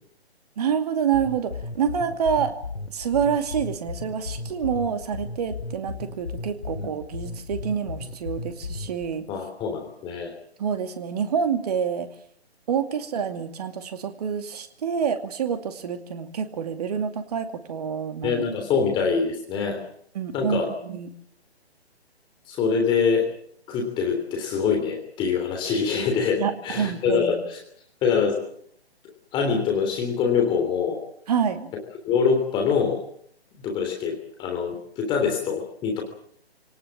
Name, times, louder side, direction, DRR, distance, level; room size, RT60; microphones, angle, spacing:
voice 1, 0.6-2.6 2.9-9.3 10.6-12.1 12.7-18.5 20.1-21.1 26.4-27.4 31.3-31.7, right 7 dB, 40° right, 8 dB, 2.5 m, -27 dB
sound 1, 1.1-9.1, left 3 dB, 80° left, 3.8 m, -35 dB
voice 2, 9.3-10.3 18.2-19.8 20.3-20.7 22.5-23.3 23.7-27.6 28.0-28.4 29.3-31.0 32.1-33.0 33.6-36.0, left 6 dB, 15° left, 2 dB, 3.2 m, -24 dB
27.0 x 18.5 x 7.5 m, 0.66 s
figure-of-eight pair, 140°, 32 cm